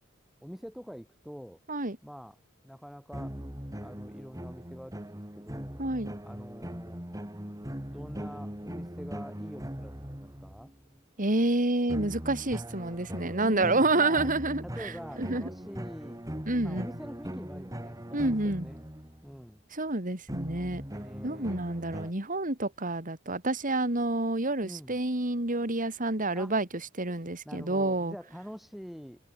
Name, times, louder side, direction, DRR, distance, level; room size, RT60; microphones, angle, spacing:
voice 1, 0.4-1.6 2.0-2.4 2.6-3.4 3.8-5.8 6.2-7.0 7.9-10.7 13.4-14.3 14.6-16.2 16.6-18.8 19.2-19.6 20.9-21.6 24.6-25.0 26.3-26.5 27.4-29.2, equal, ahead, 6.9 m, -45 dB
sound 1, 3.1-10.8 11.9-19.4 20.3-22.1, equal, 15° right, 3.0 m, -40 dB
voice 2, 5.8-6.1 11.2-14.9 15.2-15.4 16.5-16.9 18.1-18.7 19.7-20.8 21.2-26.7 27.0-28.1, right 2 dB, 40° right, 3.5 m, -28 dB
head